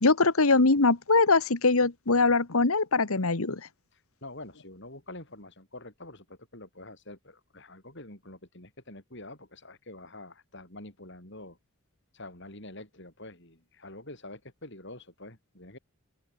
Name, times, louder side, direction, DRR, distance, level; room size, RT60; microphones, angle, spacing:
voice 1, 0.0-3.6, left 3 dB, 75° left, 1.4 m, -22 dB
voice 2, 3.9-11.6 12.1-15.8, left 2 dB, 55° left, 6.3 m, -46 dB
open air
head